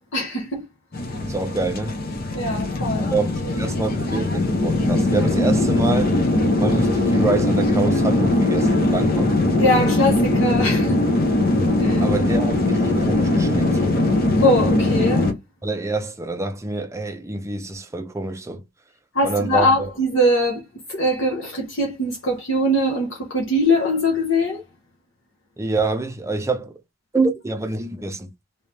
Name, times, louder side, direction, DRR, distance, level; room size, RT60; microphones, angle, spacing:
voice 1, 0.1-0.7 2.3-3.1 9.6-11.0 11.8-12.0 14.4-15.3 19.1-20.6 20.9-24.6, left 1 dB, 70° left, 1.1 m, -21 dB
sound 1, 0.9-15.3, left 2 dB, 50° left, 0.8 m, -20 dB
voice 2, 1.2-2.0 3.1-6.2 6.6-9.3 12.0-14.0 15.6-18.6 19.2-19.7 25.6-26.8 27.1-28.3, right 3 dB, 15° right, 0.6 m, -26 dB
3.1 x 2.8 x 3.4 m
head